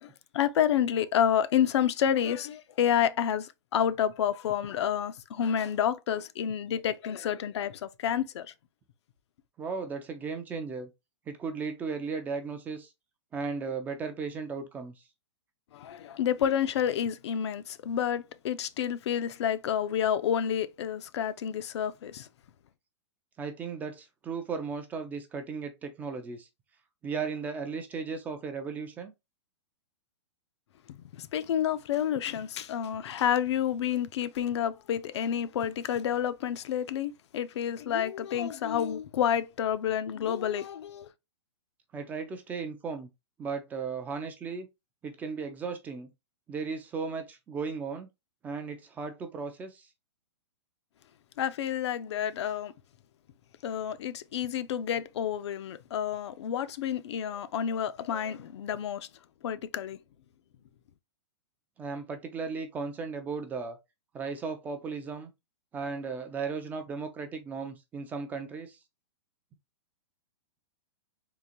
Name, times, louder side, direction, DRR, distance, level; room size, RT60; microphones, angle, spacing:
voice 1, 0.0-8.5 15.7-22.3 30.9-41.1 51.4-52.7 53.6-59.1 59.4-60.0, left 9 dB, 70° left, 0.4 m, -29 dB
voice 2, 9.6-10.9 11.3-12.9 13.3-15.0 23.4-26.5 27.0-29.1 41.9-43.1 43.4-44.7 45.0-46.1 46.5-48.1 48.4-49.9 61.8-63.8 64.1-65.3 65.7-68.8, right 5 dB, 10° right, 0.3 m, -36 dB
3.7 x 2.5 x 2.8 m
hypercardioid pair, 155°, 15 cm